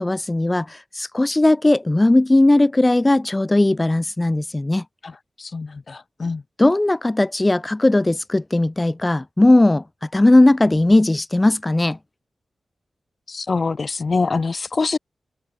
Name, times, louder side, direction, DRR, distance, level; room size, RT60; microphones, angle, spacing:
voice 1, 0.0-4.8 6.6-9.8 10.1-12.0, left 2 dB, 20° left, 1.2 m, -17 dB
voice 2, 5.0-6.4 13.3-15.0, left 4 dB, 45° left, 1.1 m, -25 dB
wide cardioid pair, 80°, 0 cm